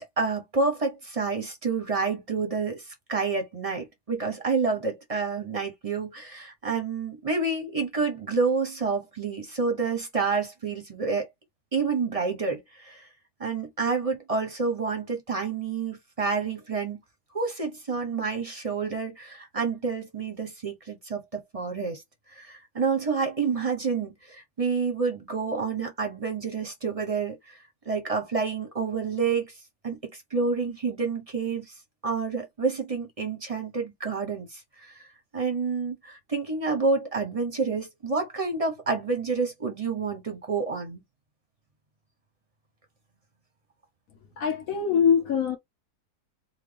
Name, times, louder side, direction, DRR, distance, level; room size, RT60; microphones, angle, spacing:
voice 1, 0.2-2.8 3.1-11.3 11.7-13.1 13.4-17.0 17.3-22.0 22.4-27.6 27.8-29.5 29.8-31.7 32.0-34.9 35.3-41.0, right 4 dB, 30° right, 0.8 m, -28 dB
voice 2, 44.4-45.6, left 7 dB, 65° left, 1.1 m, -23 dB
4.1 x 2.2 x 3.3 m
omnidirectional pair, 1.8 m